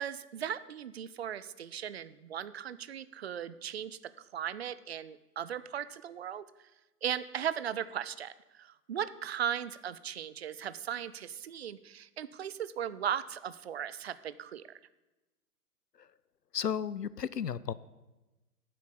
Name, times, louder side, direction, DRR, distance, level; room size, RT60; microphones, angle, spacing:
voice 1, 0.0-6.4 7.0-14.6, right 9 dB, 45° right, 16 dB, 0.5 m, -37 dB
voice 2, 16.5-17.7, left 8 dB, 90° left, 18 dB, 0.6 m, -34 dB
9.5 x 7.6 x 6.8 m, 1.1 s
figure-of-eight pair, 120°, 47 cm